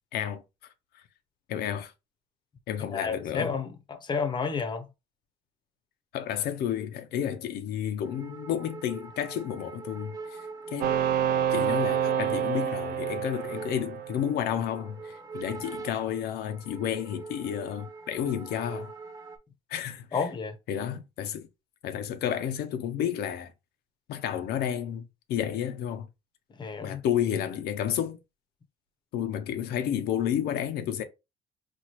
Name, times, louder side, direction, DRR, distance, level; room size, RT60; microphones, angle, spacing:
voice 1, 0.1-0.4 1.5-1.9 2.7-3.5 6.1-10.4 10.7-11.0 11.5-18.9 19.7-20.2 20.7-21.5 21.8-23.5 24.1-26.1 26.8-28.2 29.1-31.0, left 9 dB, 70° left, 0.5 m, -31 dB
voice 2, 2.9-4.9 20.1-20.5 26.5-27.0, left 5 dB, 25° left, 0.7 m, -31 dB
sound 1, 8.0-19.4, right 4 dB, 20° right, 0.6 m, -44 dB
sound 2, 10.8-14.5, right 9 dB, 65° right, 0.5 m, -28 dB
4.2 x 2.2 x 3.0 m
cardioid pair, 110°, 17 cm